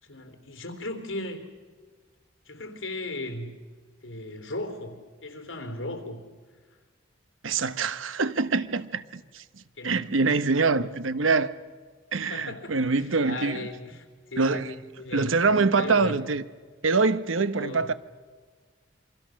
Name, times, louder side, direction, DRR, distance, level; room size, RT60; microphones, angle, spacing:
voice 1, 0.0-1.4 2.4-3.5 4.0-6.2 9.8-10.1 10.7-10.9 12.3-12.7 13.2-15.4 15.7-16.2 17.6-17.8, left 2 dB, 90° left, 3.4 m, -36 dB
voice 2, 7.4-9.4 9.8-11.5 12.1-13.7 14.4-14.8 15.1-16.4 16.8-17.9, right 4 dB, 90° right, 1.0 m, -24 dB
28.0 x 24.5 x 6.4 m
head